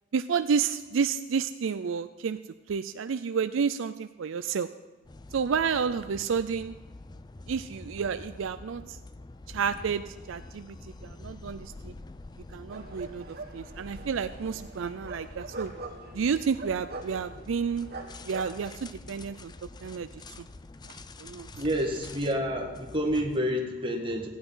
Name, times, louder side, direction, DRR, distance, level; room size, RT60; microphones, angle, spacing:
voice 1, 0.1-2.4 2.7-4.7 5.3-6.7 7.5-9.0 9.5-11.9 12.5-15.7 16.1-17.9 18.3-19.5 19.8-20.1 20.4-20.5 20.9-21.5, right 6 dB, 75° right, 11 dB, 0.4 m, -30 dB
sound 1, 5.0-23.4, left 2 dB, 20° left, 0.4 m, -47 dB
sound 2, 12.7-18.4, right 2 dB, 55° right, 1.6 m, -43 dB
voice 2, 21.5-24.3, equal, 25° right, 1 dB, 1.8 m, -29 dB
15.5 x 9.6 x 5.6 m, 1.2 s
head